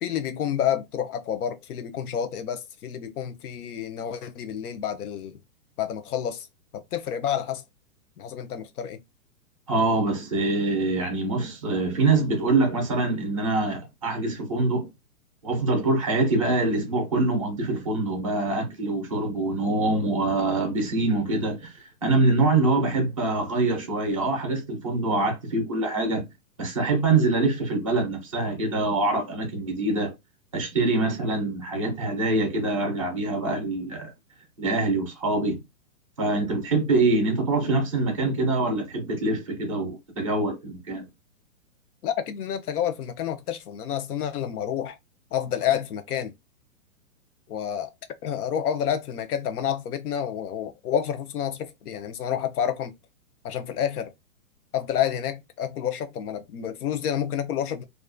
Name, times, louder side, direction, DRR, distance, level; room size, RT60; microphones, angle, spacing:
voice 1, 0.0-5.4 5.8-6.5 6.7-7.6 8.2-9.0 42.0-45.0 45.3-46.3 47.5-47.9 48.2-52.9 53.4-54.1 54.7-57.8, left 9 dB, 90° left, 0.6 m, -29 dB
voice 2, 9.7-14.9 15.4-26.2 26.6-30.1 30.5-34.1 34.6-35.6 36.2-41.0, right 2 dB, 25° right, 0.4 m, -24 dB
2.4 x 2.2 x 2.4 m
hypercardioid pair, 165°, 44 cm